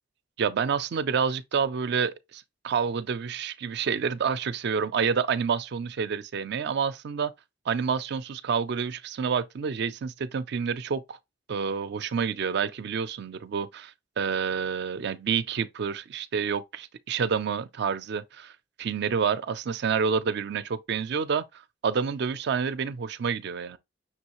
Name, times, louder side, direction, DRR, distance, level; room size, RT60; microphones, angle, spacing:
voice 1, 0.4-7.3 7.7-11.2 11.5-18.5 18.8-23.8, right 6 dB, 60° right, 0.4 m, -28 dB
5.9 x 3.1 x 2.9 m
head